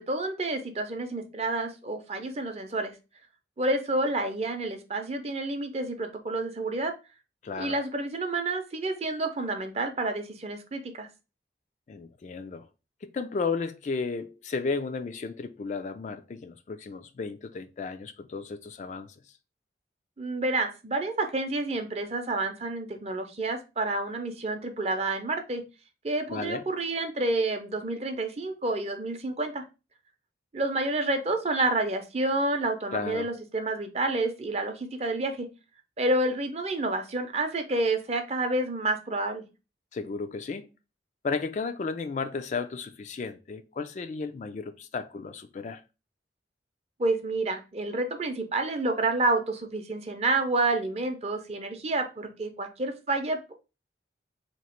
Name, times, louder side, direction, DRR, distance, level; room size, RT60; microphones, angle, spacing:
voice 1, 0.0-2.9 3.6-6.9 7.6-11.1 20.2-25.6 26.0-29.6 30.5-35.5 36.0-39.4 47.0-53.5, right 2 dB, 35° right, 0.6 m, -29 dB
voice 2, 7.4-7.8 11.9-12.7 13.0-19.1 26.3-26.6 32.9-33.3 39.9-40.7 41.2-45.8, left 4 dB, 40° left, 0.3 m, -34 dB
3.0 x 2.8 x 4.3 m
head